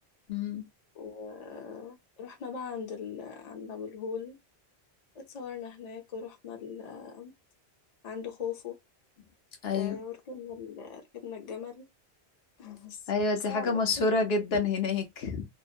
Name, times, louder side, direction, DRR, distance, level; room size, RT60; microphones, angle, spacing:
voice 1, 0.3-0.6 9.6-10.0 13.1-15.5, left 3 dB, 70° left, 0.9 m, -28 dB
voice 2, 0.9-4.4 5.1-7.3 8.0-8.7 9.7-11.9 12.6-14.1, left 6 dB, 45° left, 0.7 m, -40 dB
2.6 x 2.1 x 2.4 m
omnidirectional pair, 1.1 m